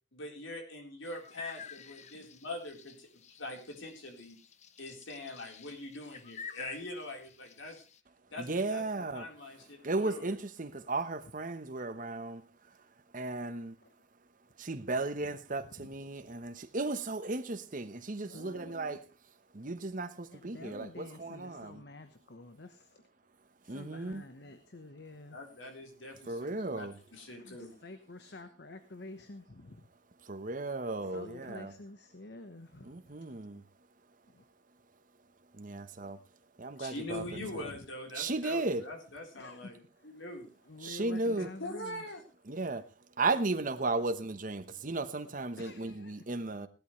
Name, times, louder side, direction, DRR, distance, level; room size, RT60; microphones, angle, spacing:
voice 1, 0.1-3.1 3.4-4.4 4.8-7.8 8.3-10.4 25.3-26.9 27.1-27.8 36.8-39.8 40.0-40.5 41.3-42.2, left 1 dB, 80° left, 3.9 m, -43 dB
sound 1, 1.0-8.0, left 6 dB, 35° left, 0.7 m, -49 dB
voice 2, 8.4-9.3 9.8-12.4 13.1-13.8 14.6-19.0 19.5-21.8 23.7-24.2 26.3-27.0 30.2-31.7 32.8-33.6 35.5-36.2 36.6-37.2 37.5-37.7 38.1-38.8 40.8-41.5 42.5-42.9 43.2-46.7, right 2 dB, 45° right, 1.0 m, -35 dB
voice 3, 9.5-9.9 13.8-13.9 15.2-15.3 15.8-15.9 18.2-19.0 20.3-23.0 23.6-25.4 27.3-29.8 30.6-30.7 31.0-32.9 34.3-34.4 37.2-37.5 39.4-40.1 40.7-42.1 45.5-46.2, left 2 dB, 60° left, 1.1 m, -49 dB
17.5 x 12.0 x 3.2 m
head